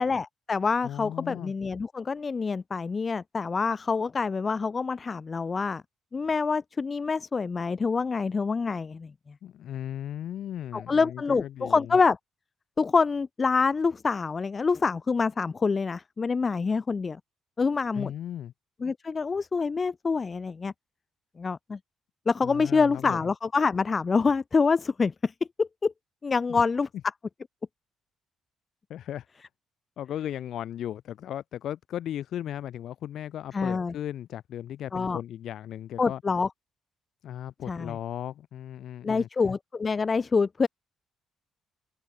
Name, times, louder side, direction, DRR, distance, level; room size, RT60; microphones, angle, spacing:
voice 1, 0.0-5.8 6.1-9.1 10.7-12.2 12.8-17.2 17.6-18.1 18.8-20.7 21.4-21.8 22.3-25.3 25.6-25.9 26.2-26.9 33.5-33.9 34.9-35.2 36.0-36.5 37.7-38.0 39.0-40.7, left 4 dB, 35° left, 0.3 m, -26 dB
voice 2, 0.8-1.5 9.4-12.0 17.9-18.5 22.4-23.3 26.5-26.6 28.9-29.3 30.0-36.2 37.2-39.3, left 11 dB, 70° left, 1.9 m, -36 dB
cardioid pair, 90°, 0 cm